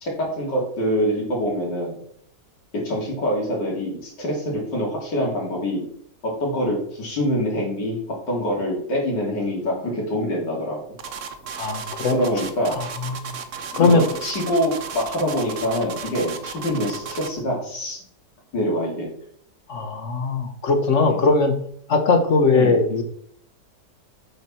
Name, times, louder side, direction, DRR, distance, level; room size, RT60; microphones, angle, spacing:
voice 1, 0.0-2.0 2.8-5.8 6.2-8.0 8.3-10.8 12.1-12.8 13.7-18.0 18.5-19.1 21.1-21.2 22.1-22.2 22.5-22.8, equal, 75° left, -2 dB, 3.4 m, -25 dB
sound 1, 11.0-17.4, right 6 dB, 55° right, 1.0 m, -34 dB
voice 2, 11.6-12.2 12.7-12.8 13.2-13.3 13.7-14.1 19.7-21.6 21.9-23.0, left 3 dB, 50° left, 7 dB, 1.2 m, -19 dB
8.4 x 6.4 x 4.4 m, 0.65 s
omnidirectional pair, 1.9 m